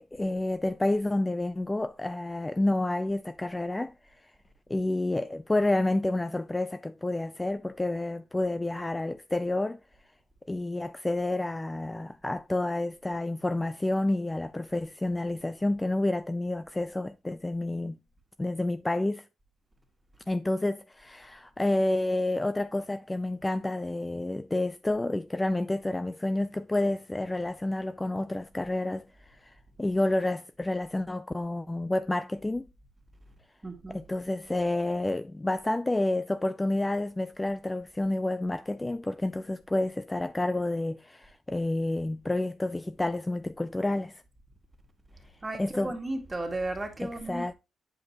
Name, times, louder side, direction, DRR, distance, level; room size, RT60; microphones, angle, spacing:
voice 1, 0.0-3.9 4.7-9.8 10.5-18.0 18.4-19.2 20.3-32.7 33.9-44.2 45.6-46.0 47.0-47.5, left 2 dB, 15° left, 0.4 m, -29 dB
voice 2, 33.6-34.0 45.4-47.5, right 2 dB, 20° right, 1.9 m, -34 dB
8.6 x 5.3 x 2.9 m
cardioid pair, 90°, 0 cm